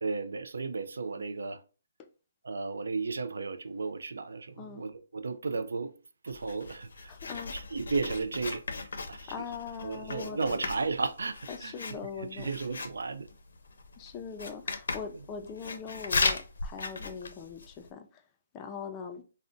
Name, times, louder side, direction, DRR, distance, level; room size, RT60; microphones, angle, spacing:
voice 1, 0.0-1.6 2.4-5.9 6.2-7.1 7.5-9.5 9.8-13.3, right 4 dB, 85° right, 0.4 m, -34 dB
Writing, 6.3-17.9, left 4 dB, 75° left, 0.5 m, -37 dB
voice 2, 7.1-7.5 9.3-10.6 11.5-12.5 14.0-18.2 18.5-19.2, left 6 dB, 20° left, 0.4 m, -41 dB
2.5 x 2.1 x 3.7 m
hypercardioid pair, 155°, 0 cm